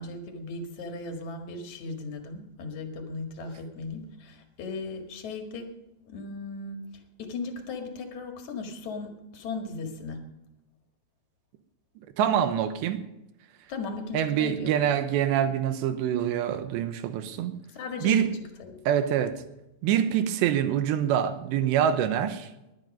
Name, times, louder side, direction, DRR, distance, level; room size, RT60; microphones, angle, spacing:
voice 1, 0.0-5.7 6.1-6.9 7.2-10.3 13.7-14.9 17.7-18.8, left 3 dB, 50° left, 4 dB, 2.6 m, -37 dB
voice 2, 12.2-13.0 14.1-17.5 18.0-18.3 18.9-19.3 19.8-22.5, right 9 dB, 80° right, 10 dB, 3.1 m, -25 dB
20.5 x 11.0 x 5.4 m, 0.94 s
omnidirectional pair, 5.2 m